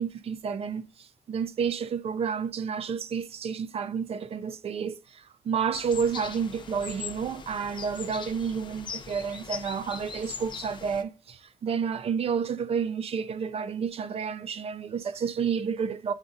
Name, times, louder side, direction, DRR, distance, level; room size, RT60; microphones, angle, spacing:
voice 1, 0.0-16.1, right 6 dB, 40° right, 0.5 m, -30 dB
sound 1, 5.7-11.0, left 6 dB, 30° left, 0.5 m, -40 dB
9.7 x 4.9 x 2.6 m
wide cardioid pair, 170°, 15 cm